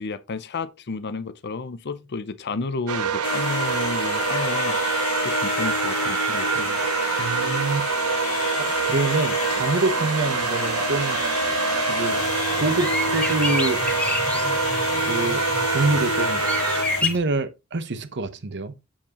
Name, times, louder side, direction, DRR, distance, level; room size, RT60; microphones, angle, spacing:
voice 1, 0.0-5.0 5.2-6.8, left 4 dB, 50° left, 0.6 m, -32 dB
sound 1, 2.9-16.8, right 7 dB, 85° right, 0.7 m, -26 dB
sound 2, 3.2-17.0, left 5 dB, 70° left, 1.0 m, -29 dB
voice 2, 7.2-7.9 8.6-11.2 11.9-12.2 12.6-13.8 15.0-15.4 15.7-18.7, right 3 dB, 55° right, 0.9 m, -26 dB
sound 3, 12.1-17.2, left 2 dB, 5° left, 1.4 m, -30 dB
7.4 x 7.2 x 2.9 m
head